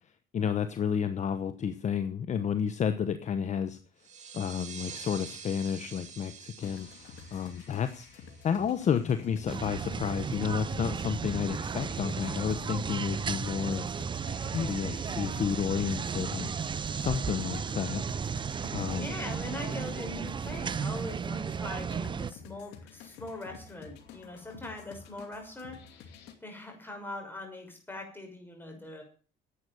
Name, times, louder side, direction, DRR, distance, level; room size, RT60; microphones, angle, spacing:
voice 1, 0.3-3.8 4.3-6.9 7.3-13.8 14.5-16.5 17.0-18.0 18.7-19.1, left 7 dB, 45° left, 11 dB, 1.0 m, -31 dB
sound 1, 4.0-9.3, right 7 dB, 45° right, 2.4 m, -47 dB
sound 2, 6.6-26.3, left 6 dB, 85° left, 2.6 m, -51 dB
sound 3, 9.5-22.3, right 6 dB, 30° right, 0.6 m, -34 dB
voice 2, 19.0-26.1 26.4-29.0, left 2 dB, 10° left, 2 dB, 6.2 m, -42 dB
11.5 x 8.4 x 9.4 m, 0.41 s
cardioid pair, 110°, 17 cm